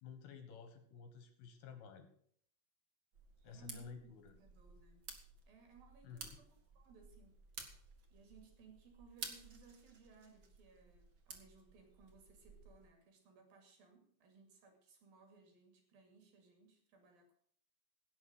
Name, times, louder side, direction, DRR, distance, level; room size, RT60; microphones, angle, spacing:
voice 1, 0.0-2.1 3.4-4.4 6.0-6.4, left 6 dB, 70° left, 8 dB, 3.4 m, -53 dB
sound 1, 3.1-12.9, right 4 dB, 80° right, 0.9 m, -54 dB
voice 2, 3.4-4.1 4.4-5.1 5.5-6.5 6.7-7.4 8.1-17.3, right 5 dB, 55° right, 4 dB, 4.0 m, -63 dB
17.5 x 7.3 x 6.4 m, 0.62 s
omnidirectional pair, 5.3 m